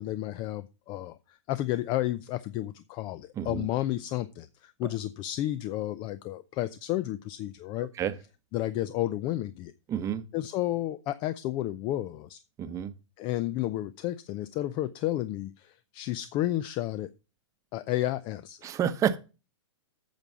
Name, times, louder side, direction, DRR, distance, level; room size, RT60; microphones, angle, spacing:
voice 1, 0.0-7.9 8.5-9.7 10.3-12.4 13.2-17.1 17.7-18.6, left 14 dB, 30° left, 0.6 m, -32 dB
voice 2, 9.9-10.2 12.6-12.9 18.6-19.2, right 9 dB, 20° right, 0.9 m, -29 dB
9.1 x 7.0 x 6.2 m
hypercardioid pair, 130°, 15 cm